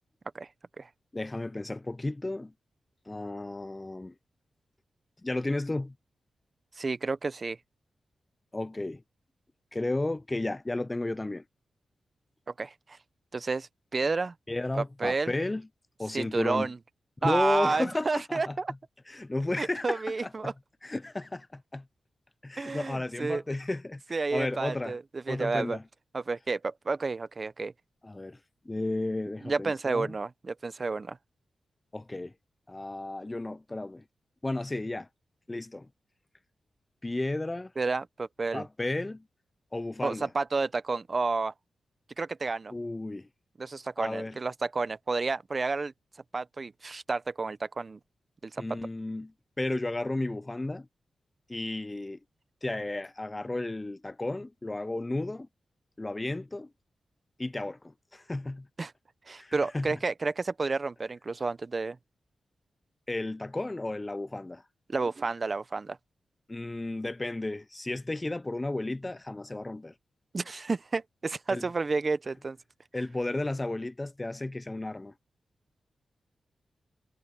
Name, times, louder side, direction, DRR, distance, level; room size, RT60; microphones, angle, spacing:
voice 1, 1.1-2.5 3.1-4.1 5.2-5.9 8.5-9.0 9.7-11.4 14.5-15.7 16.0-16.7 17.2-18.6 19.1-20.5 20.8-21.8 22.4-25.0 25.3-25.8 28.0-28.4 28.7-30.1 31.9-32.3 32.7-34.0 34.4-35.1 35.5-35.9 37.0-37.7 38.5-39.2 39.7-40.3 42.7-43.3 44.0-44.4 48.6-49.3 49.6-50.9 51.5-52.2 52.6-55.5 56.0-56.7 57.4-58.7 59.4-60.0 63.1-64.6 66.5-69.9 71.5-71.7 72.9-75.1, left 2 dB, 20° left, 0.5 m, -33 dB
voice 2, 6.8-7.6 12.6-13.0 13.3-14.3 14.7-15.3 16.1-16.8 17.2-18.7 19.6-20.5 22.6-23.4 24.1-25.8 26.1-27.7 29.4-31.2 37.8-38.7 40.0-41.5 42.2-42.7 43.6-45.9 46.3-48.0 48.4-48.6 58.8-58.9 59.3-62.0 64.9-66.0 70.3-72.6, right 3 dB, 45° right, 0.9 m, -31 dB
cardioid pair, 70°, 0 cm